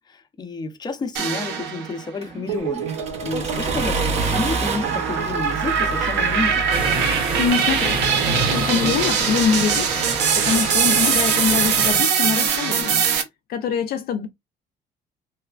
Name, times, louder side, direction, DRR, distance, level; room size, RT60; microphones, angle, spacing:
voice 1, 0.1-6.7, left 3 dB, 25° left, 0.6 m, -30 dB
sound 1, 1.2-2.0 2.5-13.2, right 7 dB, 85° right, 0.7 m, -22 dB
Accelerating revving vroom, 2.2-7.5, right 3 dB, 40° right, 0.9 m, -28 dB
sound 2, 6.7-12.0, right 3 dB, 60° right, 1.4 m, -27 dB
voice 2, 7.4-8.0 8.5-9.9 10.3-13.0 13.5-14.3, left 7 dB, 65° left, 0.4 m, -23 dB
3.2 x 2.0 x 2.3 m
cardioid pair, 110°, 17 cm